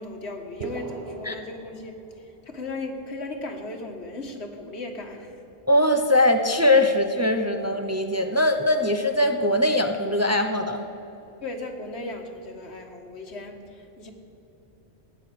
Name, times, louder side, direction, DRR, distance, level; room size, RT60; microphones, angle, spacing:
voice 1, 0.0-5.4 11.4-14.1, left 2 dB, 80° left, 4 dB, 1.8 m, -36 dB
sound 1, 0.6-2.5, right 3 dB, 70° right, 1.4 m, -39 dB
voice 2, 5.7-10.8, left 1 dB, 15° right, 6 dB, 0.7 m, -21 dB
16.0 x 9.7 x 8.5 m, 3.0 s
omnidirectional pair, 1.1 m